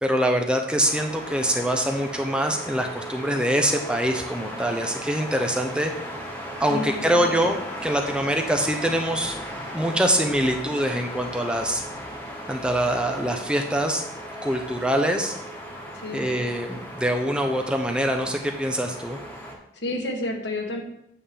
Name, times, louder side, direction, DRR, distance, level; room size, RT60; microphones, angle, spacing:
voice 1, 0.0-5.9 6.6-9.4 9.7-11.8 12.5-14.0 14.4-15.3 16.1-19.2, equal, 5° right, 3 dB, 0.6 m, -24 dB
sound 1, 0.8-19.5, equal, 10° left, 1.5 m, -37 dB
voice 2, 6.7-7.3 15.9-16.3 19.7-20.8, left 2 dB, 80° left, 2 dB, 1.5 m, -30 dB
8.9 x 3.7 x 6.9 m, 0.80 s
head